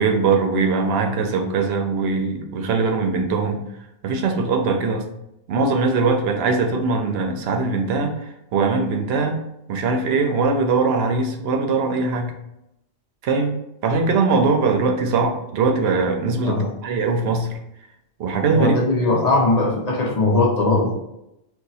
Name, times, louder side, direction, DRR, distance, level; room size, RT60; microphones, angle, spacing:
voice 1, 0.0-3.6 4.0-5.1 5.5-8.2 8.5-9.4 9.7-12.3 13.2-13.5 13.8-17.5 18.2-18.8 19.1-19.2, right 4 dB, 70° right, 4 dB, 0.8 m, -21 dB
voice 2, 18.5-20.9, left 2 dB, 50° left, 0 dB, 0.6 m, -19 dB
2.8 x 2.3 x 4.0 m, 0.85 s
omnidirectional pair, 1.1 m